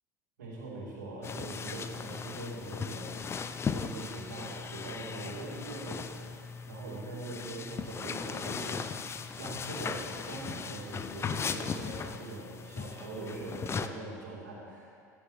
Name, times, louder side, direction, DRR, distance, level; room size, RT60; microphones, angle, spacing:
voice 1, 0.4-3.1 3.6-9.1 9.4-14.9, right 2 dB, 80° right, -7 dB, 3.0 m, -42 dB
sound 1, 1.2-13.9, left 6 dB, 30° left, 0.5 m, -38 dB
14.0 x 10.0 x 3.1 m, 2.4 s
figure-of-eight pair, 70°, 9 cm